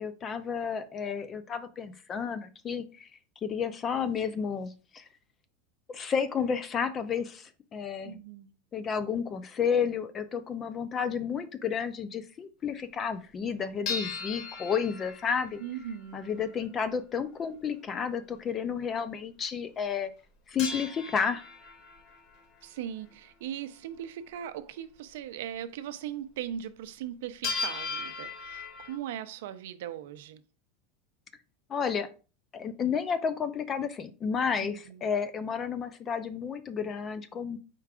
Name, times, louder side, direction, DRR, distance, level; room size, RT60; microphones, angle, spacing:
voice 1, 0.0-3.1 3.4-5.0 5.9-8.2 8.7-15.6 16.1-20.1 20.5-21.4 31.7-32.1 32.5-37.6, left 6 dB, 20° left, 0.3 m, -31 dB
voice 2, 8.0-8.5 15.6-16.2 22.6-30.4 34.6-35.0, right 10 dB, 60° right, 0.4 m, -39 dB
sound 1, 13.9-16.2 20.6-22.4 27.4-29.0, left 4 dB, 35° left, 0.9 m, -37 dB
4.5 x 2.4 x 4.7 m
supercardioid pair, 180°, 0 cm